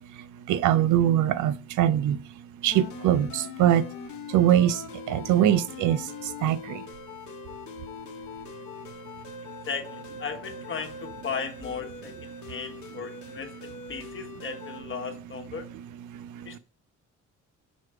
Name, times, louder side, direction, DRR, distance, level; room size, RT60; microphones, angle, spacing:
voice 1, 0.5-2.2 2.6-3.8 4.3-4.7 5.1-6.0 6.4-6.6, right 11 dB, 80° right, 0.5 m, -22 dB
sound 1, 2.7-14.8, left 5 dB, 70° left, 1.0 m, -42 dB
voice 2, 9.7-15.7 16.4-16.6, left 5 dB, 40° left, 1.3 m, -36 dB
6.3 x 3.2 x 4.7 m
cardioid pair, 90°, 30 cm